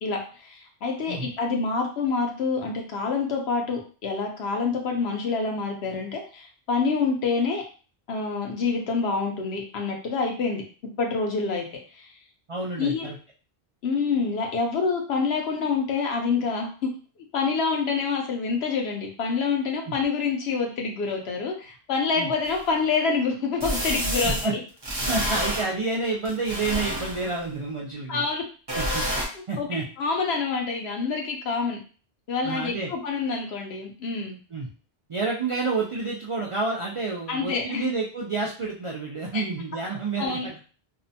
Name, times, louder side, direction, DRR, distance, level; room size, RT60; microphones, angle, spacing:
voice 1, 0.0-7.6 8.1-10.6 11.0-11.7 11.9-12.1 12.8-13.1 13.8-16.9 17.3-24.5 28.1-28.4 29.3-29.7 30.0-31.8 32.3-34.4 37.3-37.9 39.3-39.4 40.2-40.5, left 4 dB, 90° left, 1 dB, 1.0 m, -27 dB
voice 2, 12.5-13.2 19.9-20.0 22.2-22.3 24.4-24.5 25.1-28.2 28.7-29.0 29.5-29.8 32.4-32.9 34.5-34.7 35.1-40.6, right 3 dB, 60° right, -3 dB, 0.3 m, -29 dB
sound 1, 22.4-22.5 23.6-24.4 24.8-25.6 26.2-27.4 28.7-29.2, equal, 30° right, 0.7 m, -28 dB
2.7 x 2.1 x 2.7 m, 0.38 s
omnidirectional pair, 1.0 m